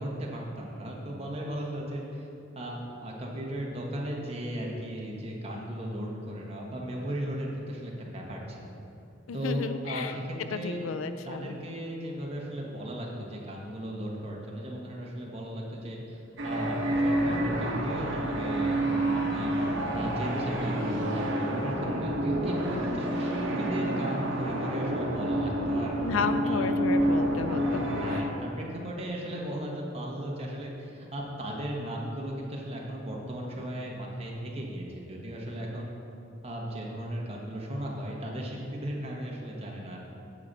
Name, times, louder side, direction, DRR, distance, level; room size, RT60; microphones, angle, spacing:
voice 1, 0.0-2.3 2.5-8.7 9.3-10.8 11.2-19.6 19.9-26.0 26.4-26.7 27.8-35.9 36.4-40.0, equal, 30° right, -2 dB, 1.3 m, -36 dB
voice 2, 9.3-10.2 10.5-11.6 26.0-28.3, left 4 dB, 85° left, 10 dB, 0.4 m, -33 dB
sound 1, 16.4-28.2, right 1 dB, 65° right, 1.1 m, -28 dB
9.5 x 6.8 x 4.1 m, 2.9 s
head